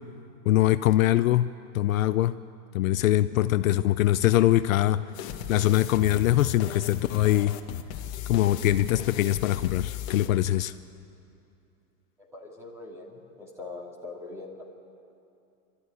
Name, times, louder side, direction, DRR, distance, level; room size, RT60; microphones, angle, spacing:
voice 1, 0.5-2.3 2.7-5.1 5.5-7.5 8.3-10.7, left 14 dB, 60° left, 12 dB, 0.6 m, -23 dB
sound 1, 5.1-10.3, left 10 dB, 30° left, 1.0 m, -36 dB
voice 2, 12.2-14.7, left 3 dB, 5° right, -1 dB, 2.6 m, -42 dB
27.0 x 13.0 x 9.7 m, 2.7 s
supercardioid pair, 170°, 46 cm